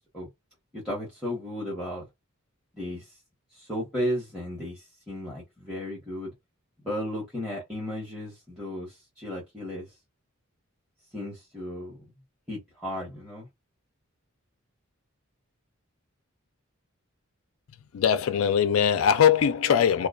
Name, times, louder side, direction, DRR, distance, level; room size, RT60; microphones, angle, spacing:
voice 1, 0.7-2.1 2.7-3.1 3.5-6.3 6.8-9.9 11.1-12.1 12.5-13.5, equal, ahead, 1.0 m, -34 dB
voice 2, 17.9-20.1, left 8 dB, 70° left, 0.4 m, -21 dB
2.3 x 2.3 x 2.4 m
head